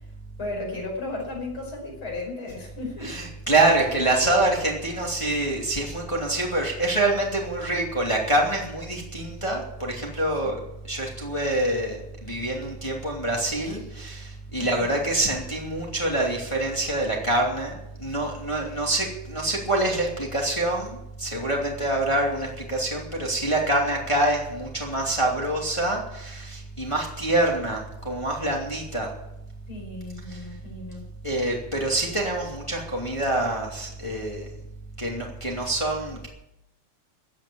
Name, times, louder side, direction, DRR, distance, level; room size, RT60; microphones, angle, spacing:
voice 1, 0.4-3.2 3.8-3.9 10.4-10.5 13.6-13.8 14.6-15.0 29.7-31.0, left 2 dB, 40° left, 0 dB, 6.0 m, -35 dB
voice 2, 3.0-10.6 10.9-17.7 18.0-29.1 30.3-30.4 31.2-34.5 35.0-36.3, right 2 dB, 10° left, -1 dB, 2.4 m, -26 dB
15.0 x 9.0 x 8.7 m, 0.84 s
omnidirectional pair, 3.4 m